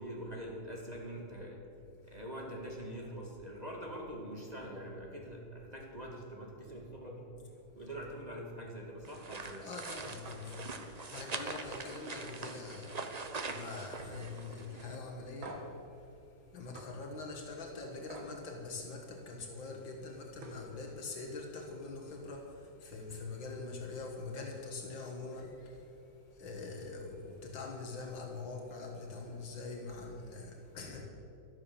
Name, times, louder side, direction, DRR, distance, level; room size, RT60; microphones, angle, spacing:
voice 1, 0.0-1.6 2.0-7.3 7.8-9.7, equal, 20° right, -2 dB, 2.0 m, -44 dB
sound 1, 9.0-15.0, right 4 dB, 45° right, 0.5 m, -43 dB
voice 2, 9.6-13.0 13.4-15.6 16.5-25.8 26.4-31.1, left 3 dB, 75° left, 1 dB, 2.2 m, -44 dB
sound 2, 10.2-10.4 10.8-11.1 11.5-11.7 12.1-13.3 13.5-14.0 14.4-14.5 15.4-15.8 16.7-16.9 18.1-18.3 20.0-20.1 20.4-20.7, right 2 dB, 80° right, 2.6 m, -49 dB
12.5 x 12.5 x 7.0 m, 2.8 s
omnidirectional pair, 2.1 m